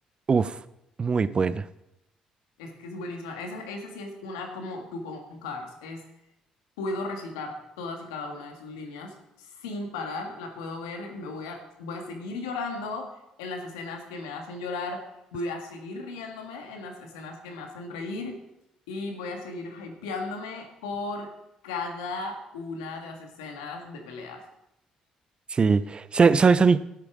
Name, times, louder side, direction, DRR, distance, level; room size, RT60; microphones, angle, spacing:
voice 1, 1.0-1.7 25.5-26.8, right 5 dB, 40° right, 16 dB, 0.7 m, -20 dB
voice 2, 2.6-6.1 6.8-13.1 13.4-18.4 18.9-21.3 21.6-24.4, left 3 dB, 85° left, 3 dB, 1.8 m, -36 dB
12.0 x 8.5 x 4.9 m, 0.87 s
hypercardioid pair, 50°, 3 cm